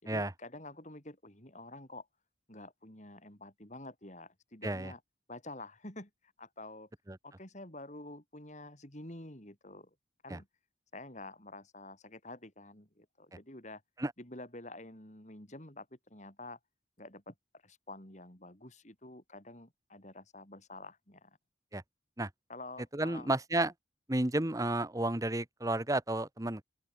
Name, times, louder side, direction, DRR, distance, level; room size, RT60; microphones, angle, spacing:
voice 1, 0.0-2.1 2.5-5.0 5.3-6.1 6.4-6.9 7.2-9.9 10.2-10.5 10.9-13.8 14.2-16.6 17.0-17.3 17.6-21.4 22.5-23.3, left 2 dB, 40° left, 4.8 m, -48 dB
voice 2, 22.9-23.7 24.1-26.6, right 2 dB, 20° right, 1.0 m, -32 dB
open air
head